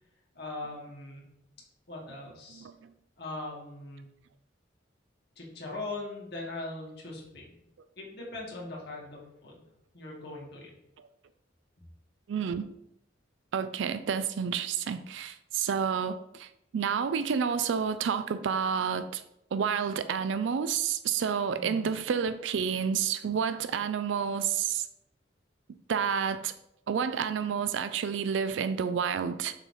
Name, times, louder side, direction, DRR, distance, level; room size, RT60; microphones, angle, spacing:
voice 1, 0.4-1.2 1.9-2.7 3.2-4.0 5.4-7.6 8.0-9.7 9.9-10.7 21.6-21.9, left 2 dB, 60° left, -3 dB, 2.1 m, -40 dB
voice 2, 12.3-12.7 13.5-19.2 19.5-24.9 25.9-26.5 26.9-29.5, right 7 dB, 75° right, 12 dB, 0.4 m, -30 dB
6.4 x 3.8 x 5.0 m, 0.82 s
head